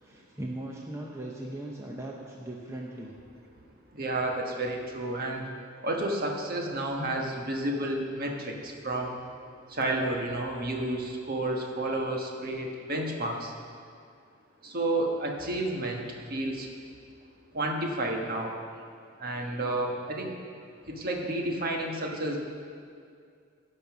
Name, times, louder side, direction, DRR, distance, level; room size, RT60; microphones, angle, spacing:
voice 1, 0.0-3.1 17.5-17.6, right 1 dB, 15° right, -2 dB, 0.7 m, -39 dB
voice 2, 3.9-5.4 5.8-9.2 9.7-13.5 14.6-16.0 16.3-16.7 17.5-18.5 19.2-20.3 20.9-22.4, right 1 dB, 45° right, 1 dB, 1.3 m, -31 dB
16.0 x 5.5 x 6.1 m, 2.3 s
head